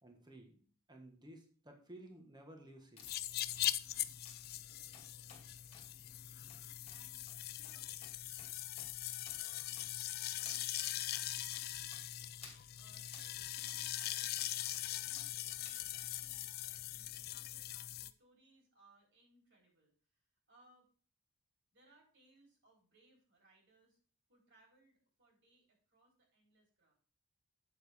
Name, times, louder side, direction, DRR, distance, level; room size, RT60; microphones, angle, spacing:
voice 1, 0.0-0.6 0.9-3.1, right 1 dB, 20° right, 3 dB, 1.5 m, -55 dB
sound 1, 3.0-18.1, left 13 dB, 45° left, 0.4 m, -41 dB
sound 2, 3.0-3.2 3.5-3.7 4.2-4.5 4.9-5.4 5.7-5.9 6.5-6.6 6.9-7.0 7.3-7.4 7.6-7.7 8.0-8.1 8.4-8.5 8.8-8.9 9.3-9.4 9.8-10.1 10.5-10.6 11.1-11.2 11.5-11.6 11.9-12.0 12.4-12.6 13.1-13.3 13.7-14.1 14.4-14.8 15.2-15.3 15.6-15.8 16.1-16.2, left 5 dB, 25° left, 2.1 m, -55 dB
voice 2, 5.2-5.7 6.9-7.9 9.3-11.1 12.7-20.9 21.7-24.0 24.3-26.9, right 2 dB, 55° right, 0 dB, 3.6 m, -69 dB
8.4 x 7.1 x 3.5 m, 0.42 s
head